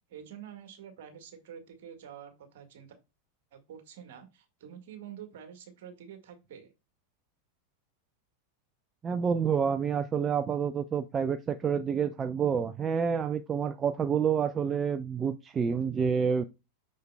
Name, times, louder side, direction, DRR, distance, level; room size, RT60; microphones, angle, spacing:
voice 1, 0.1-2.9 3.5-6.7, right 9 dB, 55° right, 1.9 m, -47 dB
voice 2, 9.0-16.4, right 7 dB, 20° right, 0.4 m, -28 dB
6.4 x 6.4 x 2.3 m
figure-of-eight pair, 90°, 0 cm